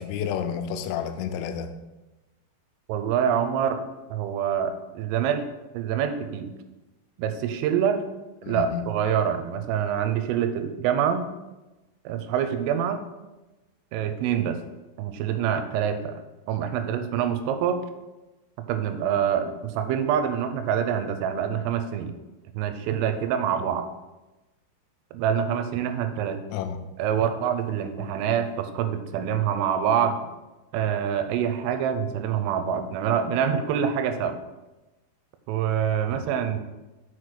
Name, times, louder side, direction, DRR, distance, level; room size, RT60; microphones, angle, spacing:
voice 1, 0.0-1.7 8.4-8.8 26.5-26.8 36.1-36.2, left 8 dB, 90° left, 3.3 m, -30 dB
voice 2, 2.9-3.8 4.1-5.4 5.7-6.5 7.2-8.1 8.5-11.3 12.1-13.1 13.9-14.6 15.0-16.2 16.5-17.8 18.7-22.1 22.6-23.9 25.1-26.4 27.0-30.2 30.7-34.4 35.5-36.6, right 8 dB, 90° right, 3.3 m, -26 dB
6.2 x 6.0 x 4.8 m
omnidirectional pair, 5.7 m